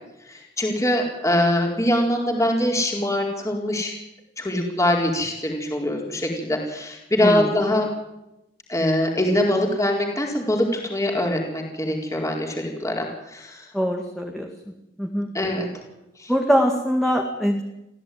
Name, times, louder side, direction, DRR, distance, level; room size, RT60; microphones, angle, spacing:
voice 1, 0.3-4.0 4.4-7.9 8.7-13.6 15.3-15.7 16.2-16.3, left 1 dB, 20° left, 0 dB, 4.4 m, -23 dB
voice 2, 7.2-7.5 13.7-14.5 15.0-15.3 16.3-17.6, equal, ahead, 1 dB, 2.2 m, -22 dB
26.5 x 15.5 x 9.5 m, 0.92 s
head